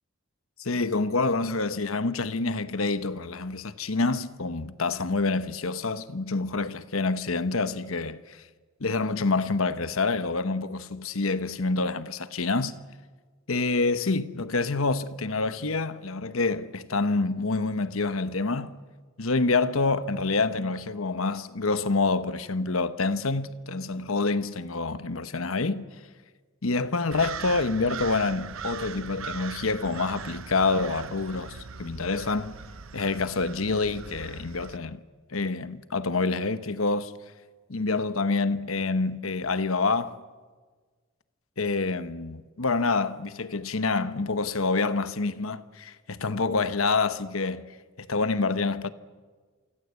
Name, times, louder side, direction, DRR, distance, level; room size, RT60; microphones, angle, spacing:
voice 1, 0.6-8.4 8.8-12.8 13.5-18.8 19.2-25.8 26.6-31.5 31.8-32.6 32.9-35.0 35.3-37.1 37.7-40.2 41.6-48.9, left 3 dB, 85° left, 1.2 m, -27 dB
sound 1, 27.1-34.8, right 6 dB, 75° right, 0.8 m, -40 dB
28.0 x 24.5 x 8.3 m
head